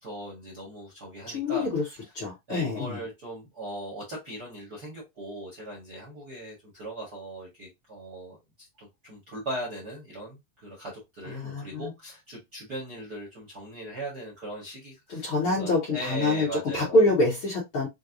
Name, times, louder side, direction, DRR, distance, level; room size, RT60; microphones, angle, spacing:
voice 1, 0.0-1.7 2.5-17.0, right 1 dB, 45° right, 1.3 m, -39 dB
voice 2, 1.3-1.8 2.1-3.0 11.3-11.9 15.1-17.9, left 2 dB, 50° left, 1.7 m, -26 dB
6.4 x 2.2 x 2.6 m
omnidirectional pair, 4.0 m